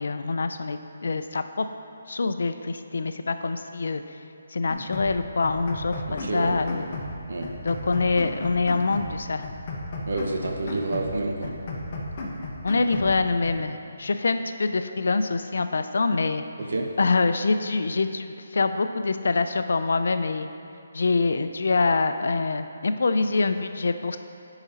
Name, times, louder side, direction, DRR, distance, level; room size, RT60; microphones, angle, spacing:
voice 1, 0.0-1.7 2.1-4.0 4.5-6.9 7.6-9.5 12.6-16.4 17.0-20.5 20.9-24.2, left 3 dB, 70° left, 9 dB, 0.4 m, -25 dB
sound 1, 4.7-5.2 5.4-7.2 7.4-9.2 9.4-11.1 11.4-13.1 13.4-13.5, left 2 dB, 30° left, 0.9 m, -34 dB
voice 2, 6.1-6.6 7.3-7.5 10.1-11.5 16.6-16.9, right 2 dB, 65° right, 2 dB, 1.0 m, -29 dB
9.6 x 4.9 x 4.1 m, 2.6 s
hypercardioid pair, 170°, 0 cm